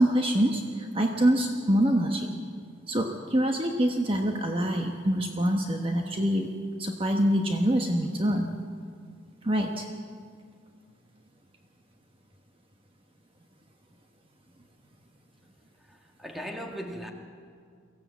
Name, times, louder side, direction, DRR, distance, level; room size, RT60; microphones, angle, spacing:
voice 1, 0.0-2.3 2.9-6.5 6.8-8.5 9.4-9.9, right 1 dB, 30° right, 3 dB, 1.2 m, -25 dB
voice 2, 15.9-17.1, equal, ahead, 1 dB, 1.9 m, -38 dB
23.5 x 16.0 x 8.3 m, 2.1 s
head